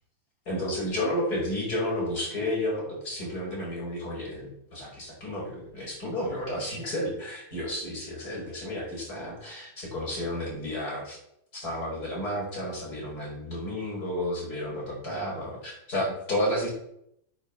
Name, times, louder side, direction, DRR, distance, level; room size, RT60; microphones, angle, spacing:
voice 1, 0.5-11.2 11.5-16.7, left 1 dB, 20° left, -3 dB, 5.1 m, -32 dB
8.9 x 8.4 x 7.0 m, 0.76 s
omnidirectional pair, 5.3 m